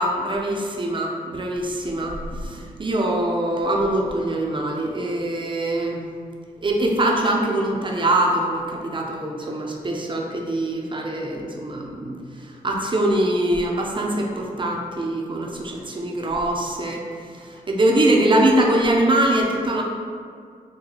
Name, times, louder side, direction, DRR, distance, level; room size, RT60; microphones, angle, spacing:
voice 1, 0.0-6.0 6.6-17.0 17.3-19.8, right 1 dB, 30° right, -1 dB, 0.6 m, -23 dB
3.9 x 2.2 x 3.0 m, 2.2 s
cardioid pair, 55°, 16 cm